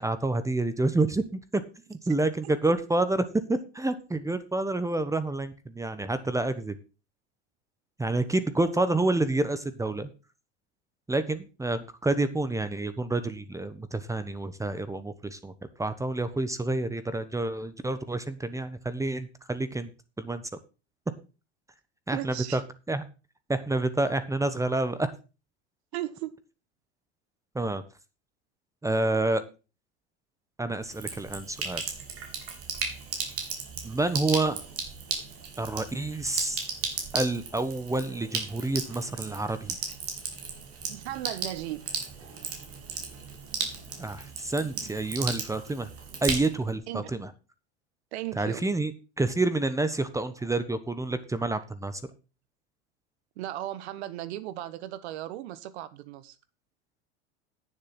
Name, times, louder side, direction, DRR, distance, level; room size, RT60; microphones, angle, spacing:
voice 1, 0.0-1.6 1.9-6.8 8.0-10.1 11.1-15.5 15.8-19.9 20.2-20.4 22.1-22.6 22.9-23.0 23.5-25.1 27.5-27.8 28.8-29.4 30.6-31.8 33.8-34.6 35.6-36.6 37.1-39.8 44.0-45.9 46.2-47.3 48.4-48.9 49.2-52.0, right 2 dB, 10° right, 1.1 m, -28 dB
voice 2, 22.1-22.6 25.9-26.4 40.9-41.8 46.9-47.1 48.1-48.6 53.4-56.4, right 14 dB, 70° right, 1.4 m, -36 dB
Sink (filling or washing), 30.8-46.8, right 5 dB, 40° right, 3.6 m, -36 dB
9.6 x 7.2 x 6.0 m
hypercardioid pair, 95°, 34 cm